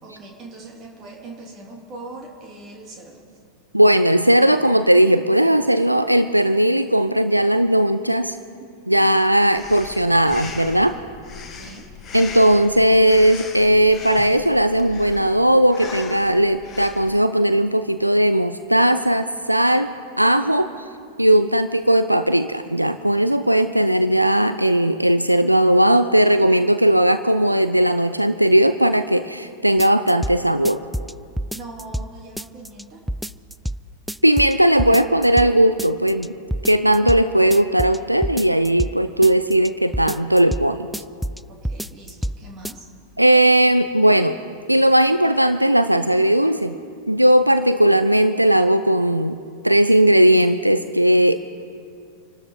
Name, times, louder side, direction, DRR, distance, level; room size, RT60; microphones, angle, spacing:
voice 1, 0.0-3.2 11.6-11.9 31.5-33.0 41.5-42.9, right 2 dB, 30° right, 0 dB, 3.2 m, -40 dB
voice 2, 3.7-8.4 8.9-11.0 12.1-20.7 21.2-30.8 34.2-36.3 36.6-40.9 43.2-44.4 44.7-46.8 47.1-49.4 49.6-51.4, right 1 dB, 90° right, 11 dB, 0.5 m, -17 dB
Breathing, 9.6-17.2, left 4 dB, 25° left, 1.8 m, -38 dB
sound 1, 29.8-30.4 30.6-32.1 32.4-32.8 33.1-33.8 34.1-34.5 34.8-35.5 35.8-36.3 36.5-37.2 37.5-38.9 39.2-39.7 39.9-40.6 40.9-41.4 41.6-42.4 42.6-42.7, equal, ahead, 0.3 m, -27 dB
27.0 x 12.5 x 3.9 m, 2.4 s
figure-of-eight pair, 90°, 0 cm